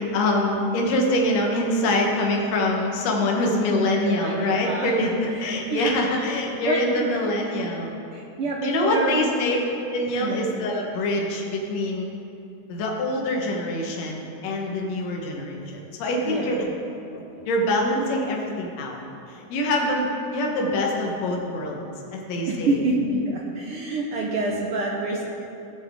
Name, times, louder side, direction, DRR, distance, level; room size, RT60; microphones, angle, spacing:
voice 1, 0.0-7.9 8.6-9.6 9.9-12.1 12.7-16.6 17.1-19.0 19.3-21.8 22.1-22.8, left 1 dB, 70° left, 0 dB, 2.3 m, -25 dB
voice 2, 3.9-6.3 6.6-7.1 8.1-9.3 10.2-10.5 16.2-16.6 22.5-25.2, right 2 dB, 70° right, -1 dB, 1.4 m, -27 dB
16.5 x 7.2 x 3.6 m, 2.9 s
omnidirectional pair, 3.3 m